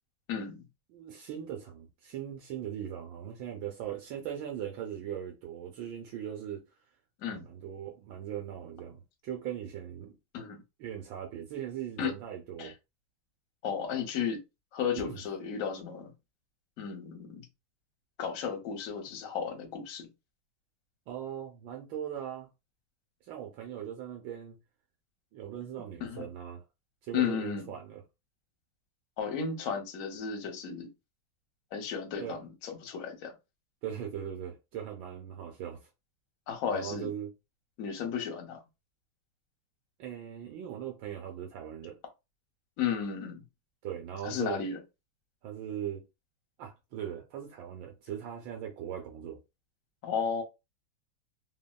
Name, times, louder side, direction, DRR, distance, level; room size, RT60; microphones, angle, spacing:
voice 1, 0.3-0.6 7.2-7.5 10.3-10.6 12.0-12.1 12.6-12.7 13.6-14.4 14.7-16.1 16.8-17.5 18.2-20.1 26.0-26.3 27.1-27.7 29.2-30.9 31.7-33.3 36.5-37.1 37.8-38.6 42.8-43.4 44.2-44.8 50.0-50.4, left 7 dB, 60° left, 0.8 m, -34 dB
voice 2, 0.9-6.6 7.3-10.2 10.8-12.7 15.0-15.2 21.1-22.5 23.2-24.6 25.3-26.6 27.0-28.0 32.2-32.4 33.8-35.9 36.7-37.3 40.0-42.0 43.8-44.7 45.4-46.1 46.6-49.4, right 9 dB, 75° right, 1.3 m, -39 dB
3.4 x 2.1 x 2.2 m
omnidirectional pair, 2.2 m